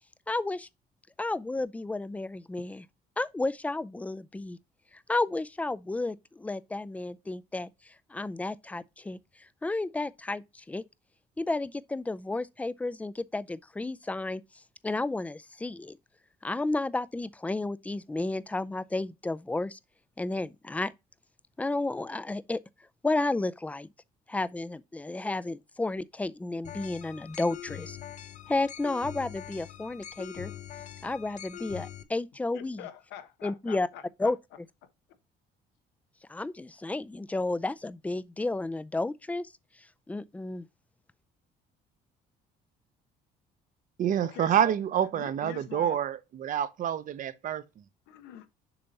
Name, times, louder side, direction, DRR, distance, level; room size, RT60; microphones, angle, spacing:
voice 1, 0.3-0.7 1.2-2.8 3.2-4.6 5.1-7.7 8.1-9.2 9.6-10.8 11.4-14.4 14.8-16.0 16.4-19.8 20.2-20.9 21.6-22.6 23.0-23.9 24.3-28.0 28.5-30.5 31.0-32.8 33.4-33.9 34.2-34.4 36.3-39.5 40.1-40.7, left 2 dB, 10° left, 0.4 m, -32 dB
sound 1, 26.6-32.0, left 11 dB, 45° left, 0.8 m, -43 dB
voice 2, 32.5-34.3 44.2-44.8 45.1-46.0 48.1-48.5, left 10 dB, 90° left, 1.0 m, -44 dB
voice 3, 44.0-47.6, right 9 dB, 50° right, 0.7 m, -27 dB
6.9 x 2.8 x 5.3 m
cardioid pair, 110°, 17 cm